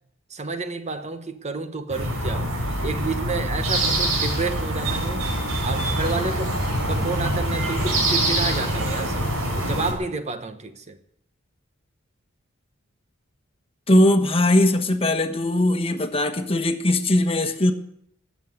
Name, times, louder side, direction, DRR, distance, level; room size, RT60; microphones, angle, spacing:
voice 1, 0.3-5.3 5.6-11.0, right 3 dB, 35° right, 1.1 m, -30 dB
sound 1, 1.9-9.9, right 1 dB, 85° right, 5.1 m, -24 dB
voice 2, 13.9-17.7, left 1 dB, 30° left, 1.3 m, -20 dB
19.5 x 7.6 x 9.4 m
head